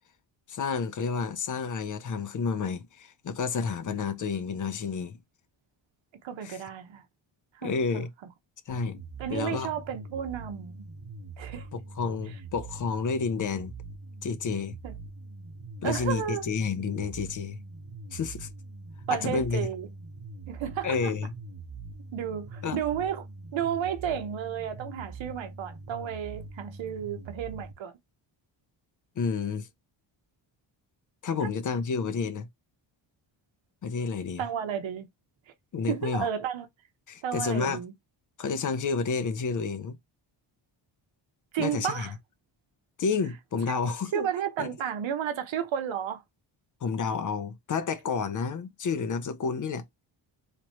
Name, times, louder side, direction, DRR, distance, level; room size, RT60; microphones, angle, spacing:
voice 1, 0.5-5.2 6.4-6.6 7.6-8.1 8.7-9.0 9.3-9.7 11.7-13.7 14.2-14.8 15.8-17.6 18.1-18.5 19.1-19.7 20.8-21.3 22.6-22.8 29.2-29.7 31.2-32.5 33.8-34.4 35.7-36.3 37.1-37.8 38.4-40.0 41.6-42.1 43.0-44.3 44.6-44.7 46.8-49.8, left 5 dB, 40° left, 0.6 m, -30 dB
voice 2, 6.2-7.0 7.5-8.0 9.2-10.9 11.4-11.7 14.8-14.9 15.8-16.5 19.1-19.9 20.5-21.1 22.1-23.2 23.5-27.9 31.4-31.5 34.4-35.1 35.9-36.7 37.2-37.9 41.5-42.1 43.7-43.8 44.1-46.2, right 9 dB, 75° right, 1.0 m, -32 dB
sound 1, 8.7-27.7, right 3 dB, 45° right, 1.2 m, -43 dB
3.3 x 3.0 x 2.9 m
cardioid pair, 120°, 47 cm